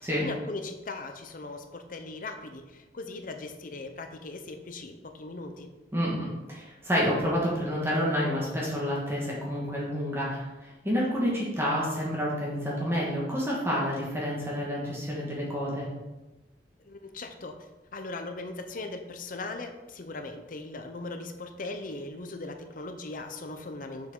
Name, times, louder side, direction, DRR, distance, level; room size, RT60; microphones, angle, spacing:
voice 1, 0.0-5.7 16.8-17.6 17.9-24.1, left 3 dB, 50° left, 6 dB, 0.7 m, -39 dB
voice 2, 5.9-15.9, equal, 15° right, -5 dB, 1.6 m, -29 dB
7.0 x 6.2 x 3.8 m, 1.1 s
head